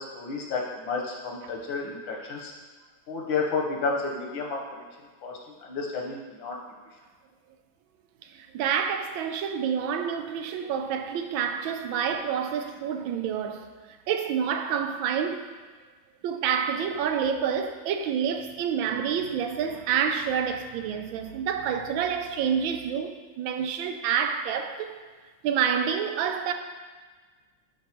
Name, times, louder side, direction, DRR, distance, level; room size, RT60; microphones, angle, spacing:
voice 1, 0.0-2.5 3.1-4.8 5.2-6.6, left 4 dB, 90° left, 1.9 m, -31 dB
voice 2, 8.3-13.7 14.1-15.5 16.2-25.0 25.4-26.5, right 7 dB, 90° right, 1.4 m, -28 dB
11.5 x 4.7 x 3.0 m
omnidirectional pair, 2.1 m